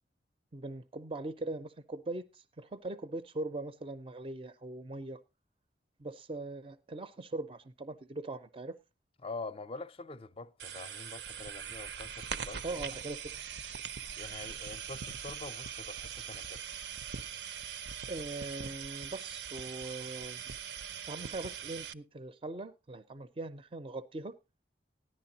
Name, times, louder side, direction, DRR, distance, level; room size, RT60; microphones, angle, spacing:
voice 1, 0.5-5.2 6.0-8.8 12.6-13.3 18.1-20.4 21.0-24.3, right 2 dB, 30° right, 0.5 m, -41 dB
voice 2, 9.2-12.8 14.1-16.6, left 3 dB, 30° left, 0.5 m, -45 dB
sound 1, 10.6-21.9, right 7 dB, 80° right, 0.6 m, -41 dB
14.0 x 11.0 x 2.8 m
head